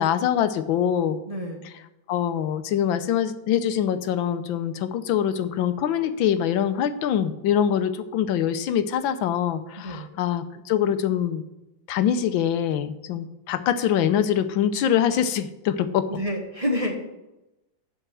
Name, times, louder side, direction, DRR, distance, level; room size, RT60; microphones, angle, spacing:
voice 1, 0.0-1.2 2.1-11.4 11.9-16.1, left 9 dB, 85° left, 11 dB, 1.5 m, -24 dB
voice 2, 1.3-1.6 9.8-10.1 16.1-17.0, equal, 20° right, 0 dB, 1.1 m, -28 dB
7.8 x 5.6 x 7.5 m, 0.95 s
omnidirectional pair, 2.1 m